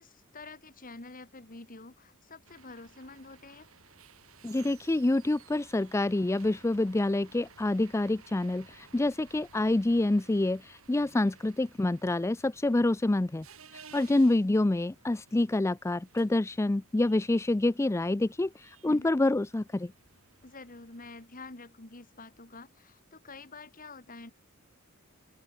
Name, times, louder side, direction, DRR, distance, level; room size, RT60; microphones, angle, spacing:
voice 1, 0.0-3.7 14.0-14.4 18.8-19.1 20.4-24.3, left 3 dB, 40° left, 2.3 m, -48 dB
sound 1, 2.5-21.3, right 6 dB, 75° right, 5.8 m, -57 dB
voice 2, 4.4-13.4 13.7-19.9, left 2 dB, 15° left, 0.4 m, -27 dB
open air
head